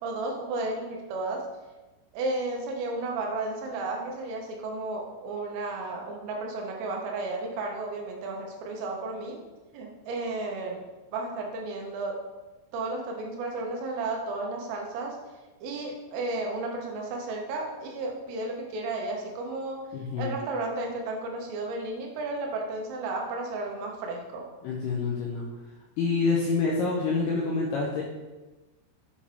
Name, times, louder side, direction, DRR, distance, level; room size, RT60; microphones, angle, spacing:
voice 1, 0.0-1.4 2.1-9.4 9.7-10.8 11.1-12.2 12.7-15.2 15.6-19.9 20.2-24.5, right 2 dB, 85° right, 1 dB, 3.7 m, -33 dB
voice 2, 19.9-20.3 24.6-25.4 26.0-28.0, left 4 dB, 90° left, -3 dB, 2.3 m, -27 dB
8.4 x 5.2 x 3.4 m, 1.1 s
omnidirectional pair, 5.7 m